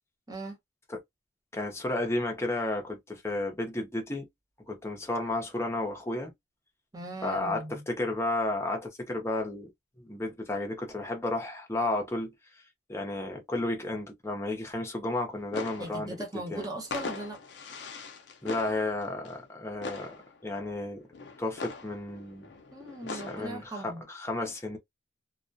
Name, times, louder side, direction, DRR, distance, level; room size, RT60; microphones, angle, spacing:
voice 1, 0.3-0.6 6.9-7.8 15.8-17.4 22.7-24.1, right 2 dB, 20° right, 0.8 m, -39 dB
voice 2, 1.5-4.3 4.7-6.3 7.2-9.7 10.0-12.3 12.9-16.2 16.5-16.7 18.4-20.1 20.4-21.0 21.4-22.5 23.1-24.8, left 2 dB, 15° left, 0.6 m, -32 dB
sound 1, 15.3-16.5 16.8-19.5 19.8-20.6 21.0-23.6, left 4 dB, 65° left, 0.5 m, -41 dB
2.3 x 2.2 x 2.5 m
head